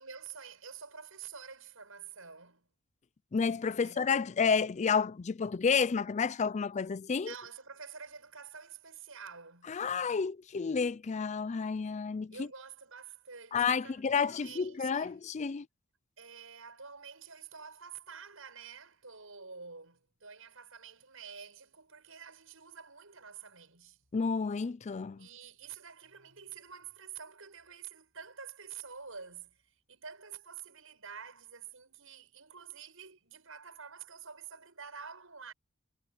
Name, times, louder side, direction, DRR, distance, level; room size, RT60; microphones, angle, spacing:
voice 1, 0.0-2.7 3.7-4.1 7.2-9.8 12.3-15.2 16.2-24.0 25.2-35.5, right 6 dB, 70° right, 8.0 m, -48 dB
voice 2, 3.3-7.3 9.7-12.5 13.5-15.7 24.1-25.3, left 5 dB, 35° left, 0.4 m, -30 dB
head